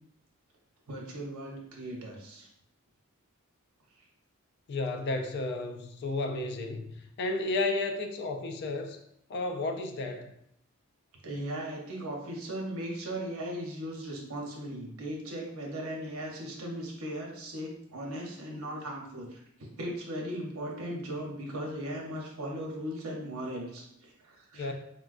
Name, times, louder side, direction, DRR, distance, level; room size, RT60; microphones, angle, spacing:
voice 1, 0.9-2.5 11.2-24.7, right 1 dB, 85° right, -1 dB, 0.8 m, -38 dB
voice 2, 4.7-9.0 9.3-10.3 24.5-24.7, left 2 dB, 50° left, 6 dB, 0.4 m, -32 dB
4.3 x 2.2 x 2.4 m, 0.73 s
head